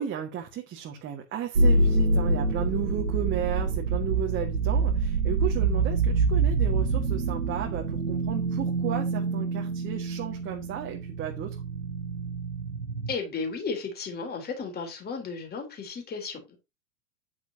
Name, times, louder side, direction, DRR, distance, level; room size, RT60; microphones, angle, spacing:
voice 1, 0.0-11.6, right 10 dB, 30° right, 1.9 m, -34 dB
sound 1, 1.5-13.1, right 3 dB, 90° right, 1.0 m, -26 dB
voice 2, 13.1-16.6, left 4 dB, 25° left, 3.9 m, -34 dB
9.5 x 9.5 x 2.9 m
figure-of-eight pair, 95°, 42 cm